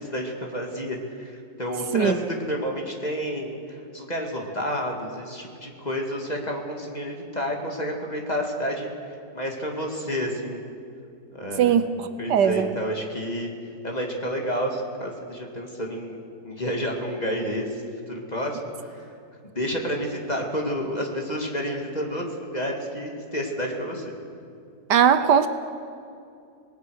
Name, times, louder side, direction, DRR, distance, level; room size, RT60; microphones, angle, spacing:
voice 1, 0.0-2.2 2.5-10.6 11.3-11.8 12.2-13.5 13.8-19.1 19.4-24.1, equal, 20° left, 1 dB, 2.4 m, -30 dB
voice 2, 11.6-12.6 24.9-25.5, right 8 dB, 70° right, 11 dB, 1.4 m, -19 dB
26.5 x 19.0 x 6.4 m, 2.5 s
omnidirectional pair, 1.9 m